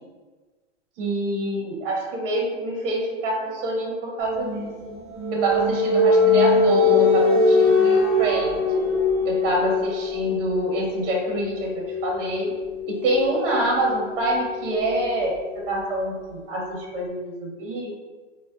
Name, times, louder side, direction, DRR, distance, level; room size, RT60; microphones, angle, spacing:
voice 1, 1.0-4.7 5.3-8.6 9.2-12.5 12.9-15.3 15.7-17.9, right 1 dB, 50° right, -1 dB, 1.0 m, -26 dB
sound 1, 4.4-15.9, left 3 dB, 15° right, 0.4 m, -22 dB
4.8 x 2.2 x 2.5 m, 1.3 s
supercardioid pair, 170°, 36 cm